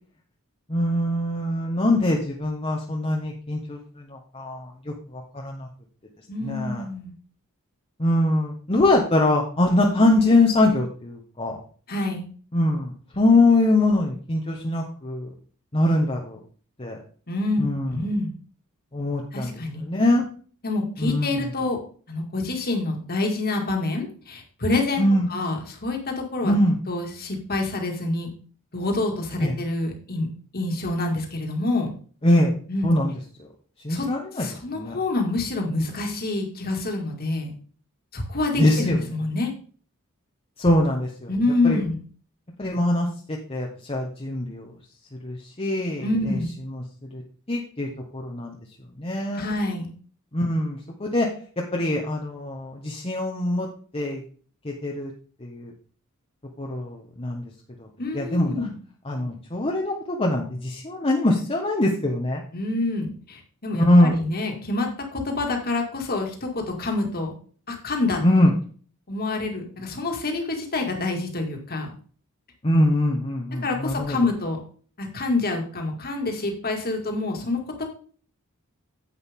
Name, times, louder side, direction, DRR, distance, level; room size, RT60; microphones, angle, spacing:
voice 1, 0.7-3.8 4.3-4.7 5.4-5.7 6.4-6.8 8.0-11.5 12.5-15.3 15.7-16.4 16.8-17.0 17.6-17.9 18.9-19.5 19.9-20.3 21.0-21.3 25.0-25.3 26.4-26.7 29.4-29.5 32.2-32.5 32.8-33.1 33.8-34.5 34.8-35.0 38.6-39.0 40.6-41.3 41.6-41.8 42.6-43.1 43.5-44.6 45.2-46.0 47.1-47.2 47.5-47.9 48.1-48.6 49.0-49.5 50.3-51.3 51.7-53.7 53.9-54.2 54.6-55.1 55.4-55.7 56.6-57.4 58.1-58.6 59.1-62.4 63.9-64.1 68.2-68.5 72.6-74.2, left 1 dB, 25° left, -1 dB, 1.2 m, -22 dB
voice 2, 6.3-7.1 11.9-12.3 17.3-18.3 19.3-19.8 20.6-21.8 22.1-26.5 26.9-28.3 28.7-30.3 30.5-31.9 32.7-32.9 33.9-34.1 34.3-37.5 38.1-39.5 41.3-42.0 46.0-46.5 49.3-49.9 58.0-58.7 62.5-67.3 67.7-68.2 69.1-71.9 73.6-74.6 75.0-77.8, left 2 dB, 45° left, 2 dB, 2.2 m, -27 dB
9.9 x 8.1 x 3.7 m, 0.43 s
head